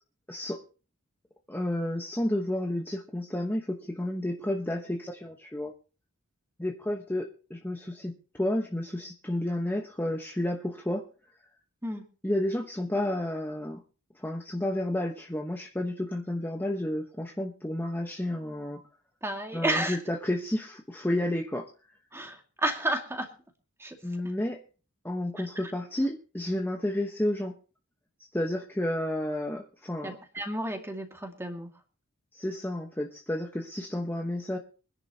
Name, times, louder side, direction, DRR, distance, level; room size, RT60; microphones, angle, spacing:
voice 1, 0.3-0.6 1.5-5.7 6.6-11.1 12.2-13.8 14.1-18.8 19.5-21.7 24.0-24.6 25.0-27.6 28.3-30.2 32.3-34.6, left 1 dB, 10° left, 2 dB, 1.0 m, -31 dB
voice 2, 19.2-20.0 22.1-23.3 23.8-24.0 30.0-31.7, right 1 dB, 10° right, 3 dB, 2.1 m, -31 dB
24.0 x 10.5 x 2.8 m, 0.36 s
head